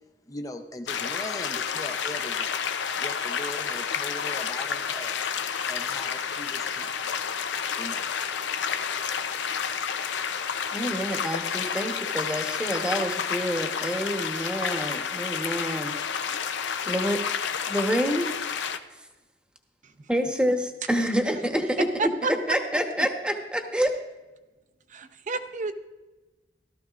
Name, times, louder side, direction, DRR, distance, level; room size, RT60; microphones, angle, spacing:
voice 1, 0.3-2.6 3.0-5.2 5.7-7.3 7.8-8.1, left 1 dB, 20° left, 5 dB, 0.6 m, -39 dB
sound 1, 0.9-18.8, left 7 dB, 90° left, 0.6 m, -30 dB
voice 2, 10.7-15.9 16.9-17.2 17.7-18.3 20.1-21.9 22.5-23.9, equal, 5° right, 4 dB, 1.0 m, -27 dB
voice 3, 22.0-22.6 24.9-25.7, right 3 dB, 45° right, 9 dB, 0.7 m, -31 dB
16.5 x 13.0 x 2.5 m, 1.2 s
head